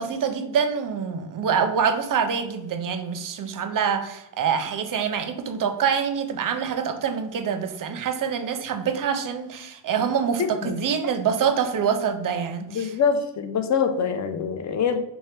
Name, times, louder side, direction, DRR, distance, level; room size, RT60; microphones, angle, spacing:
voice 1, 0.0-12.9, right 7 dB, 45° right, 8 dB, 0.5 m, -25 dB
voice 2, 10.4-10.8 12.7-15.0, left 6 dB, 40° left, 8 dB, 0.5 m, -24 dB
4.3 x 2.2 x 3.2 m, 0.87 s
cardioid pair, 90°, 47 cm